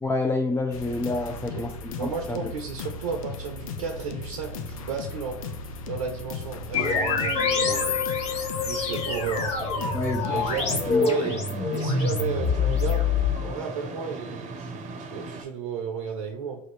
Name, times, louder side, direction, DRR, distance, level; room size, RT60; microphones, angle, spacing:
voice 1, 0.0-2.5 9.9-10.2 10.9-11.1, left 2 dB, 15° left, 3 dB, 0.5 m, -28 dB
sound 1, 0.7-11.0, left 3 dB, 85° left, 0.5 m, -37 dB
voice 2, 2.0-5.4 5.9-7.9 8.6-10.0 10.2-11.4 11.7-13.1 13.4-16.6, right 6 dB, 80° right, 4 dB, 0.6 m, -33 dB
sound 2, 6.7-13.9, left 5 dB, 40° left, 1.0 m, -26 dB
sound 3, 10.3-15.4, right 3 dB, 45° right, 0.7 m, -38 dB
4.9 x 2.6 x 3.2 m, 0.64 s
hypercardioid pair, 75°, 17 cm